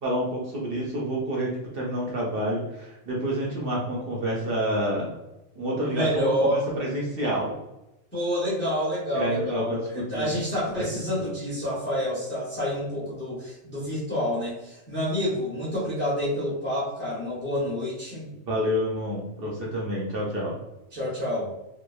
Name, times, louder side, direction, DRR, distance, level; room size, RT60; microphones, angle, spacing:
voice 1, 0.0-5.1 5.6-6.5 6.8-7.6 9.1-10.3 10.8-10.9 11.2-11.3 18.5-20.5, equal, 55° right, -3 dB, 0.7 m, -28 dB
voice 2, 5.8-6.7 8.1-18.3 20.9-21.5, equal, 10° left, -8 dB, 0.6 m, -28 dB
2.9 x 2.0 x 2.3 m, 0.93 s
omnidirectional pair, 1.4 m